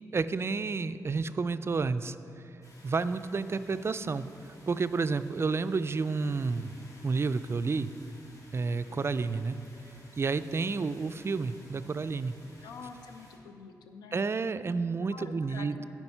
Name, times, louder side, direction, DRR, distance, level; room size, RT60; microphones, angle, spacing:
voice 1, 0.1-2.2 2.8-6.8 7.0-7.9 8.5-9.6 10.2-12.4 14.1-15.8, right 4 dB, 35° right, 13 dB, 0.3 m, -30 dB
sound 1, 2.6-13.4, left 1 dB, 50° left, 1.8 m, -56 dB
voice 2, 12.6-14.4 15.1-15.8, left 5 dB, 90° left, 6 dB, 0.5 m, -47 dB
9.7 x 4.5 x 5.5 m, 2.7 s
supercardioid pair, 45°, 7 cm